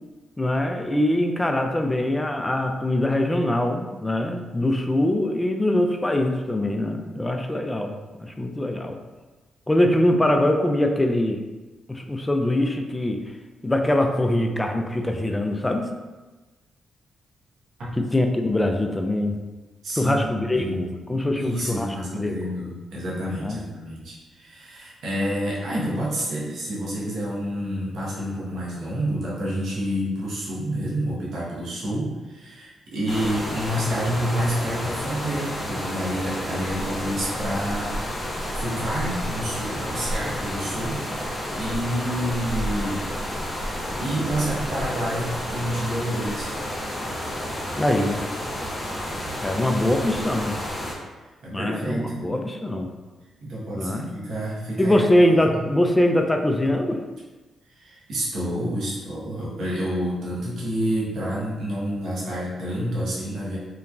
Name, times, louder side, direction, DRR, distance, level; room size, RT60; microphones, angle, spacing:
voice 1, 0.4-7.9 8.2-9.0 9.7-11.4 11.9-13.2 13.6-15.9 18.0-19.4 20.0-22.4 23.4-23.6 47.8-48.2 49.4-50.6 51.5-52.9 53.7-54.1 54.8-57.0, left 1 dB, 20° left, 4 dB, 0.4 m, -23 dB
voice 2, 19.8-20.3 20.5-20.8 21.4-41.2 41.5-43.0 44.0-46.6 51.4-52.3 53.4-55.1 55.4-55.6 57.7-63.6, equal, 70° right, -6 dB, 0.9 m, -29 dB
sound 1, 33.1-50.9, equal, 45° left, 0.8 m, -30 dB
2.9 x 2.2 x 2.4 m, 1.2 s
supercardioid pair, 50°, 0 cm